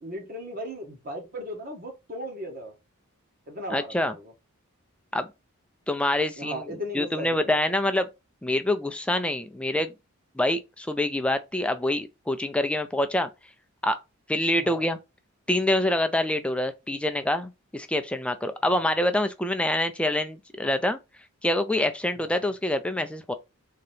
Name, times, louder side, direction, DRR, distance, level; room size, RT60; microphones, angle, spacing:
voice 1, 0.0-2.7 3.5-4.3 6.4-7.6 14.6-14.8 18.7-18.9 22.2-22.5, equal, 40° right, 1.3 m, -37 dB
voice 2, 3.7-4.1 5.1-5.3 5.9-6.7 6.9-8.1 8.4-9.9 10.4-13.3 13.8-14.0 14.3-15.0 15.5-21.0 21.4-23.3, left 1 dB, 5° left, 0.3 m, -26 dB
3.8 x 2.8 x 3.2 m
head